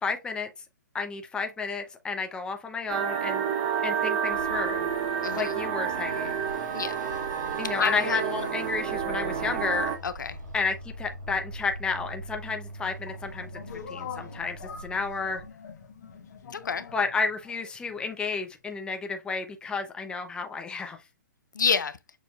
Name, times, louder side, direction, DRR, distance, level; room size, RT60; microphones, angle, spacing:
voice 1, 0.0-0.5 0.9-3.4 3.8-4.9 5.3-6.4 7.6-9.9 10.5-13.5 13.9-15.4 16.9-21.0, left 4 dB, 10° left, 0.7 m, -31 dB
sound 1, 2.9-10.0, right 8 dB, 35° right, 0.8 m, -29 dB
Car passing by / Accelerating revving vroom, 4.3-15.5, right 1 dB, 85° right, 2.4 m, -43 dB
voice 2, 5.2-5.6 6.7-7.0 7.8-8.2 10.0-10.4 16.5-16.9 21.5-22.0, left 6 dB, 80° left, 0.5 m, -28 dB
sound 2, 12.8-18.3, left 7 dB, 65° left, 1.2 m, -44 dB
6.4 x 2.7 x 2.4 m
hypercardioid pair, 130°, 10 cm